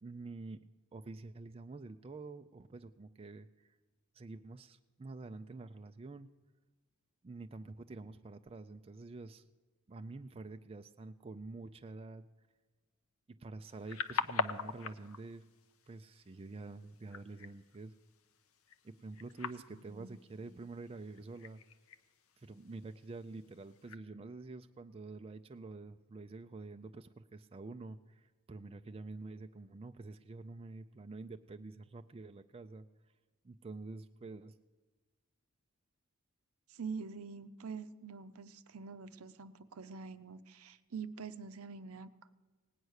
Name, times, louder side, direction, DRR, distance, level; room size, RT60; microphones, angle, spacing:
voice 1, 0.0-0.6 0.9-3.7 4.1-6.3 7.2-9.4 9.9-12.2 13.3-15.5 15.9-17.9 18.8-21.6 22.4-32.9 33.4-34.5, right 3 dB, 25° right, 7 dB, 0.4 m, -48 dB
sound 1, 13.7-24.0, left 5 dB, 65° left, 0.7 m, -44 dB
voice 2, 19.7-20.2 36.7-42.3, right 5 dB, 70° right, 12 dB, 0.6 m, -45 dB
17.5 x 9.4 x 6.4 m, 1.3 s
head